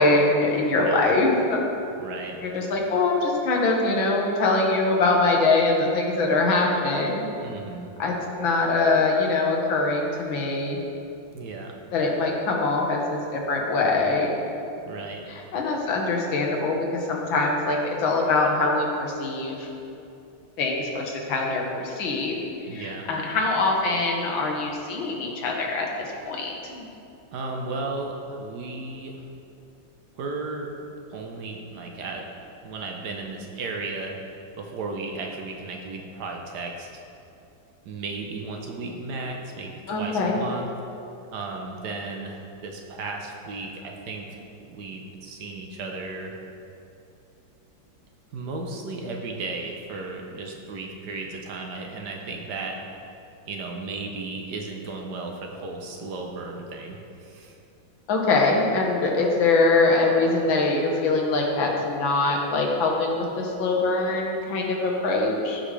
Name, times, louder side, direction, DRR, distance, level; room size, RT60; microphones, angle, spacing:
voice 1, 0.0-1.6 2.4-7.3 8.0-10.8 11.9-14.3 15.3-19.7 20.6-22.4 22.7-25.9 26.3-26.9 39.9-40.4 58.1-65.6, left 3 dB, 80° left, 0 dB, 1.9 m, -23 dB
voice 2, 2.0-2.4 7.4-7.9 11.3-11.7 14.8-15.2 22.7-23.1 27.3-29.2 30.2-30.7 31.1-32.2 32.6-34.1 34.6-36.9 37.8-39.7 40.0-40.7 41.3-46.4 48.3-52.8 53.5-57.6, right 3 dB, 65° right, 1 dB, 1.3 m, -35 dB
14.5 x 5.2 x 3.3 m, 2.7 s
omnidirectional pair, 2.1 m